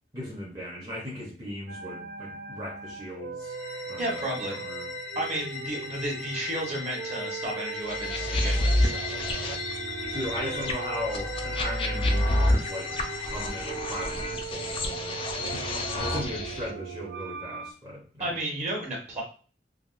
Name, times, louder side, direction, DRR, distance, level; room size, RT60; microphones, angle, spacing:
voice 1, 0.1-3.6 3.9-4.9 10.1-18.3, equal, 20° right, -6 dB, 0.7 m, -38 dB
sound 1, 1.7-17.7, right 6 dB, 65° right, 0.4 m, -39 dB
sound 2, 3.4-13.9, left 5 dB, 75° left, 0.7 m, -39 dB
voice 2, 4.0-4.6 5.1-9.1 18.2-19.2, right 1 dB, 40° right, -3 dB, 1.1 m, -33 dB
sound 3, 7.9-16.7, left 1 dB, 30° left, 0.4 m, -29 dB
3.4 x 2.2 x 2.4 m, 0.41 s
head